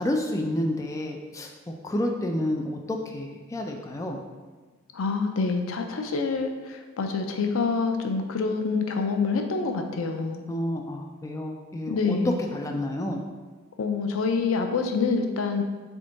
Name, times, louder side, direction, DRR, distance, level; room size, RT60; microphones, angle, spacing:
voice 1, 0.0-4.2 10.5-12.2 12.5-13.2, left 1 dB, 15° left, 2 dB, 0.3 m, -30 dB
voice 2, 4.9-10.4 11.9-12.4 13.8-15.6, left 4 dB, 90° left, 5 dB, 0.5 m, -26 dB
3.7 x 3.5 x 3.9 m, 1.3 s
head